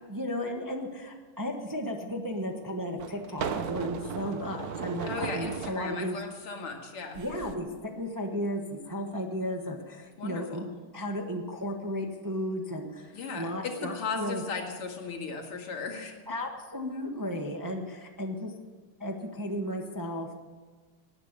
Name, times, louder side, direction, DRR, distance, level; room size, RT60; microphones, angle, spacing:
voice 1, 0.1-6.2 7.1-10.7 10.9-14.4 16.3-18.5 19.0-20.3, equal, 15° right, 3 dB, 0.7 m, -34 dB
sound 1, 1.9-2.0 3.0-5.8 7.1-7.5, right 7 dB, 55° right, 1.1 m, -36 dB
voice 2, 5.1-7.2 10.2-10.6 13.1-16.2, left 4 dB, 90° left, 2 dB, 2.8 m, -36 dB
18.5 x 9.7 x 6.8 m, 1.3 s
omnidirectional pair, 2.4 m